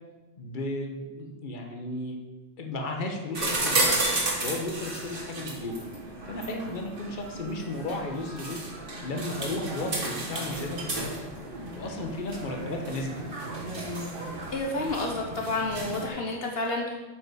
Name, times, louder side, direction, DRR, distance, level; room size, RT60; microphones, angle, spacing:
voice 1, 0.4-2.1 2.6-4.0 4.4-5.8 6.3-8.6 9.0-11.3 11.7-13.2, left 2 dB, 50° left, 2 dB, 1.3 m, -34 dB
sound 1, 3.3-16.1, right 2 dB, 55° right, 1.7 m, -33 dB
voice 2, 14.5-16.9, left 2 dB, 65° left, 0 dB, 1.2 m, -30 dB
8.6 x 5.4 x 6.3 m, 1.2 s
omnidirectional pair, 1.1 m